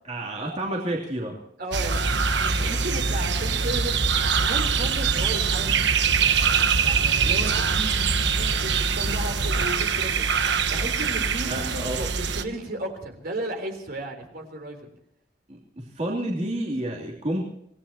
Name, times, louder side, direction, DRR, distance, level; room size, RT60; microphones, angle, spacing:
voice 1, 0.0-1.4 11.5-12.1 15.5-17.4, right 1 dB, 35° right, -2 dB, 3.1 m, -30 dB
voice 2, 1.6-2.0 2.4-4.0 4.4-5.8 6.8-14.9, right 1 dB, 55° right, 4 dB, 3.7 m, -34 dB
sound 1, 1.7-12.4, right 5 dB, 70° right, 1.2 m, -23 dB
26.5 x 19.0 x 2.9 m, 0.74 s
head